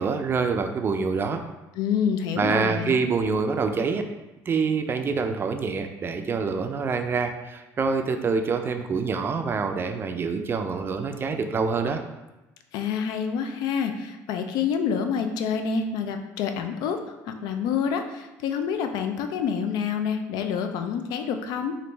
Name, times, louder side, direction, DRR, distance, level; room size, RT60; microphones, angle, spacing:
voice 1, 0.0-1.4 2.4-4.0 4.5-12.0, right 5 dB, 30° right, 6 dB, 0.4 m, -26 dB
voice 2, 1.8-3.0 12.7-17.0 17.4-21.8, left 7 dB, 75° left, 7 dB, 0.4 m, -27 dB
3.2 x 2.5 x 3.0 m, 1.0 s
supercardioid pair, 90°, 7 cm